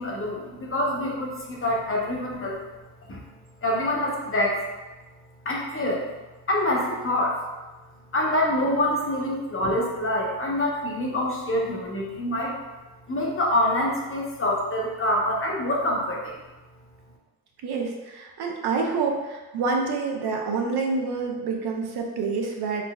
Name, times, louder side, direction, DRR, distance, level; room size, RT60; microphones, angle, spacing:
voice 1, 0.0-2.6 3.0-3.2 3.6-4.6 5.4-6.1 6.5-7.4 8.1-12.6 13.1-16.4, left 1 dB, 35° left, -2 dB, 0.8 m, -26 dB
voice 2, 17.6-22.8, right 4 dB, 80° right, 1 dB, 0.6 m, -27 dB
3.8 x 2.0 x 2.2 m, 1.2 s
cardioid pair, 55°, 39 cm